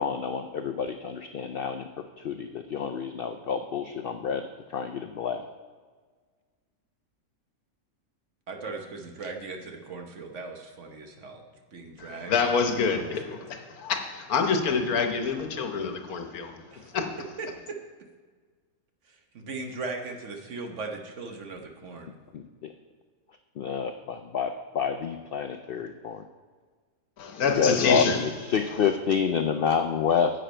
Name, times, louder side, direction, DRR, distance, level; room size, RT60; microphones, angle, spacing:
voice 1, 0.0-1.9 2.2-4.4 4.7-5.4 22.3-22.7 23.6-26.2 27.4-30.3, left 6 dB, 70° left, 7 dB, 0.5 m, -28 dB
voice 2, 8.5-11.4 11.7-12.3 12.9-13.4 16.7-16.9 17.4-17.8 19.1-22.1, right 3 dB, 60° right, 3 dB, 1.3 m, -38 dB
voice 3, 12.0-16.6 16.9-17.1 27.2-28.3 28.7-28.8, left 5 dB, 90° left, 5 dB, 1.5 m, -27 dB
10.0 x 7.9 x 4.4 m, 1.5 s
omnidirectional pair, 1.5 m